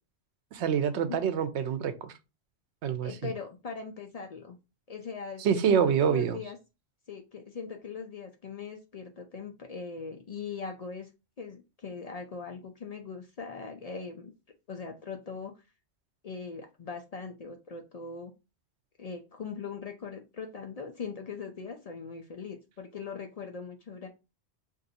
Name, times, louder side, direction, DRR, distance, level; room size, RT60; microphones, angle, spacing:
voice 1, 0.5-2.1 2.8-3.1 5.4-6.4, right 7 dB, 90° right, 0.9 m, -26 dB
voice 2, 3.0-4.6 4.9-6.6 7.1-11.1 11.4-14.3 14.7-15.5 16.2-18.3 19.0-24.1, left 5 dB, 55° left, 0.4 m, -40 dB
2.7 x 2.5 x 4.0 m
omnidirectional pair, 1.1 m